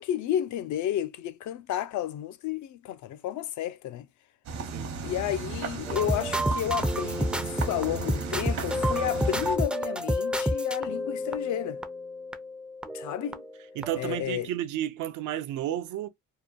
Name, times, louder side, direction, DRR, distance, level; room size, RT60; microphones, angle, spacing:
voice 1, 0.0-4.1 5.0-11.8 12.9-13.4 14.0-14.5, left 11 dB, 75° left, 0.5 m, -32 dB
sound 1, 4.5-9.6, right 4 dB, 60° right, 0.8 m, -35 dB
sound 2, 5.9-13.6 13.8-14.2, equal, 5° right, 0.3 m, -30 dB
voice 2, 13.8-16.1, right 12 dB, 80° right, 0.5 m, -32 dB
2.8 x 2.2 x 2.3 m
cardioid pair, 90°, 30 cm